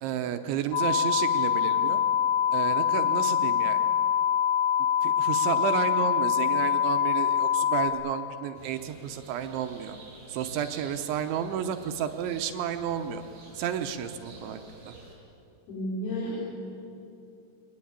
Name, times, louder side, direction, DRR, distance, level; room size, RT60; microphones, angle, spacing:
voice 1, 0.0-2.0 2.5-3.8 5.0-10.0 10.3-13.2 13.6-14.6 14.9-15.0, right 9 dB, 75° right, 8 dB, 3.0 m, -31 dB
sound 1, 0.7-7.9, left 9 dB, 70° left, 4.0 m, -24 dB
sound 2, 8.5-15.1, right 2 dB, 50° right, 7.2 m, -50 dB
voice 2, 15.7-16.4, equal, 90° left, -5 dB, 7.3 m, -32 dB
24.0 x 20.0 x 8.8 m, 2.6 s
omnidirectional pair, 5.9 m